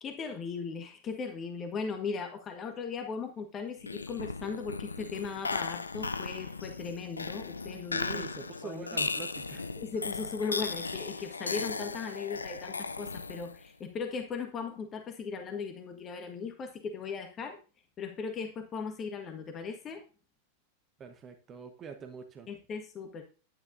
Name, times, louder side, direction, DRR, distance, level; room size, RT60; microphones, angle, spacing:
voice 1, 0.0-8.2 8.6-8.8 9.8-17.6 18.0-20.0 22.5-23.2, left 5 dB, 25° left, 5 dB, 1.5 m, -38 dB
sound 1, 3.8-13.7, left 4 dB, 75° left, 0.5 m, -37 dB
voice 2, 8.1-9.7 21.0-22.5, right 6 dB, 25° right, 6 dB, 1.3 m, -44 dB
11.0 x 10.0 x 2.7 m, 0.35 s
figure-of-eight pair, 90°, 0 cm